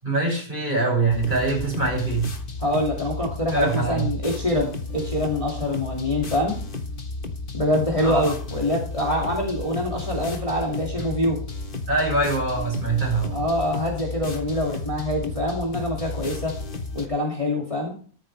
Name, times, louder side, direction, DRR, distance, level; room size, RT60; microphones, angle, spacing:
voice 1, 0.0-2.3 3.5-4.1 8.0-8.3 11.9-13.4, right 3 dB, 30° right, 6.5 m, -23 dB
sound 1, 1.1-17.1, left 3 dB, 35° left, 1.3 m, -33 dB
voice 2, 2.6-6.6 7.5-11.4 13.3-16.6 16.9-18.0, left 1 dB, 20° left, 2.3 m, -25 dB
14.0 x 12.5 x 3.3 m
omnidirectional pair, 1.6 m